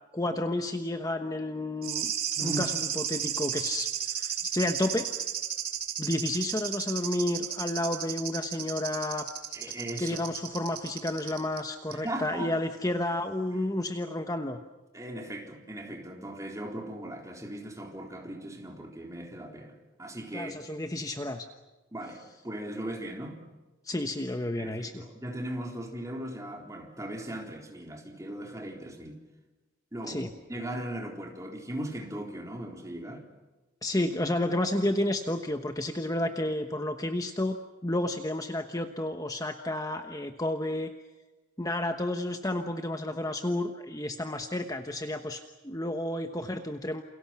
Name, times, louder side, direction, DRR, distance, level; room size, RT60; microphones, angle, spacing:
voice 1, 0.1-2.1 2.4-5.1 6.0-9.3 9.7-14.6 20.3-21.5 23.8-25.0 30.1-30.3 33.8-37.6 37.8-40.9 41.6-47.0, left 1 dB, 20° left, 1.1 m, -31 dB
sound 1, 1.8-11.6 11.9-12.0, right 9 dB, 50° right, 3.6 m, -34 dB
voice 2, 2.4-2.7 9.5-10.2 11.9-12.5 14.9-20.6 21.9-23.5 24.6-29.2 29.9-33.3, right 1 dB, 15° right, 4.0 m, -38 dB
29.0 x 28.5 x 6.0 m
head